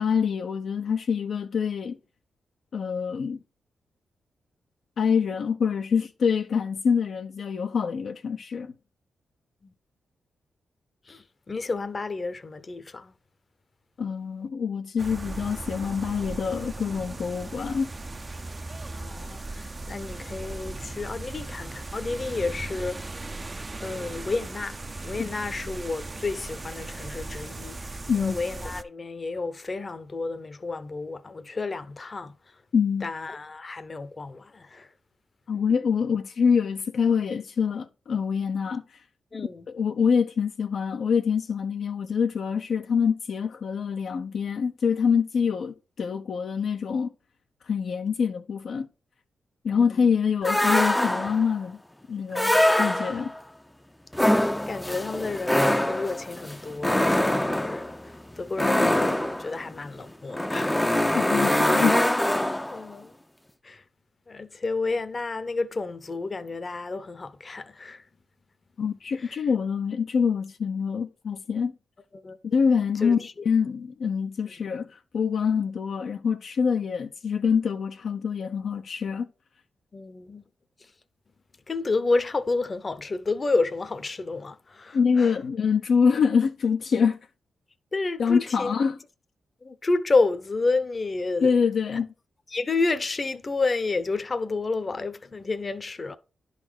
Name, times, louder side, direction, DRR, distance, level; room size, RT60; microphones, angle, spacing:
voice 1, 0.0-2.0 2.7-3.4 5.0-8.7 14.0-17.9 28.1-28.3 32.7-33.1 35.5-38.8 39.7-47.1 47.7-48.9 49.6-51.8 52.1-53.3 58.6-58.9 61.1-62.0 68.8-71.7 72.4-79.3 84.9-87.2 88.2-89.0 91.4-92.1, left 6 dB, 70° left, 0.6 m, -25 dB
voice 2, 11.1-13.1 18.9-23.2 23.8-24.8 25.0-32.6 33.0-34.9 39.3-39.7 49.7-50.1 52.5-52.6 54.2-60.8 61.7-61.9 62.7-63.2 63.6-63.8 64.3-68.0 69.2-69.4 72.1-72.4 73.0-73.3 79.9-80.4 80.8-80.9 81.7-85.4 87.9-88.7 89.6-91.5 92.5-96.2, left 3 dB, 40° left, 0.8 m, -30 dB
sound 1, 15.0-28.8, right 2 dB, 30° right, 0.6 m, -37 dB
sound 2, 50.4-51.5 52.3-53.4 54.1-62.8, left 1 dB, 10° left, 0.6 m, -24 dB
11.0 x 4.1 x 4.6 m
cardioid pair, 65°, 0 cm